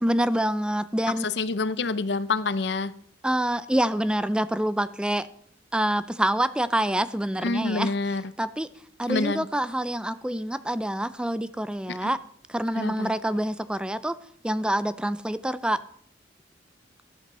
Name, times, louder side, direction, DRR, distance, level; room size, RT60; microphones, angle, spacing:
voice 1, 0.0-1.3 3.2-5.3 5.7-7.9 8.4-8.7 9.0-12.2 12.5-14.2 14.4-15.8, right 1 dB, 5° right, 14 dB, 0.4 m, -26 dB
voice 2, 1.2-2.9 7.4-8.3 9.1-9.5 11.9-12.1 12.8-13.1, left 3 dB, 70° left, 15 dB, 0.7 m, -27 dB
13.5 x 12.5 x 4.2 m, 0.65 s
head